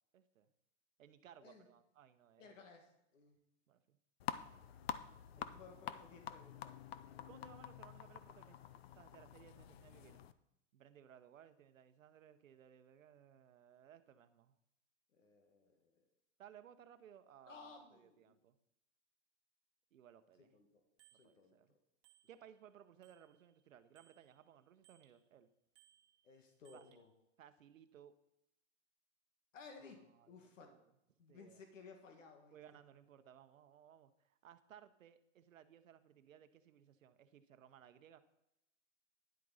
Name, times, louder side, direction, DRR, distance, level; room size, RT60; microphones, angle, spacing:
voice 1, 0.1-0.5 1.0-2.6 3.7-4.0 5.4-5.6 7.3-10.2 10.7-14.6 16.4-18.6 19.9-20.6 21.1-21.7 22.3-25.5 26.7-27.0 27.4-28.1 29.9-30.8 31.3-31.6 32.5-38.2, right 9 dB, 85° right, 11 dB, 0.9 m, -61 dB
voice 2, 2.4-3.4 5.4-6.8 15.1-16.0 17.5-18.4 20.5-20.8 21.2-21.8 26.2-27.1 29.5-30.7 31.2-32.6, left 4 dB, 75° left, 4 dB, 2.0 m, -58 dB
sound 1, 4.2-10.3, left 10 dB, 55° left, 0.6 m, -48 dB
Bicycle bell, 21.0-21.3 22.0-22.7 23.0-25.2 25.7-27.0, right 13 dB, 35° right, 1.3 m, -71 dB
10.5 x 7.7 x 4.1 m, 0.84 s
hypercardioid pair, 155°, 38 cm